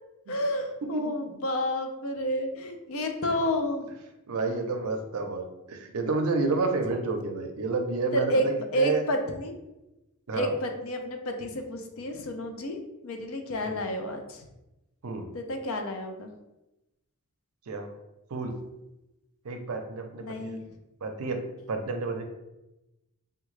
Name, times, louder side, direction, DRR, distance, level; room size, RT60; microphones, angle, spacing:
voice 1, 0.3-3.9 8.1-8.4 8.7-9.5 10.3-14.4 15.3-16.3 20.2-20.7, equal, 65° left, 5 dB, 0.5 m, -30 dB
voice 2, 0.9-1.4 4.3-9.0 10.3-10.5 13.6-13.8 15.0-15.3 17.7-17.9 18.3-18.5 19.4-20.6 21.0-21.4 21.7-22.2, right 3 dB, 70° right, 5 dB, 0.5 m, -30 dB
3.6 x 2.2 x 3.1 m, 0.96 s
head